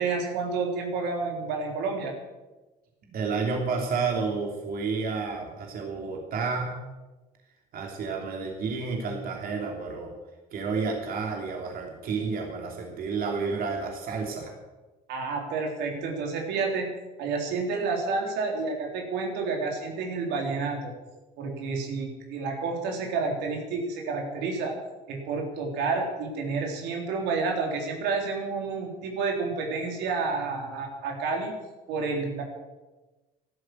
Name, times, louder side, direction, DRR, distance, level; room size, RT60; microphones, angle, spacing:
voice 1, 0.0-2.1 15.1-16.9 17.2-20.9 21.4-24.7 25.1-31.5 31.9-32.4, right 4 dB, 90° right, 1 dB, 3.7 m, -30 dB
voice 2, 3.1-6.7 7.7-10.1 10.5-14.5, right 4 dB, 60° right, 1 dB, 3.0 m, -30 dB
14.0 x 12.0 x 7.8 m, 1.1 s
cardioid pair, 110°, 17 cm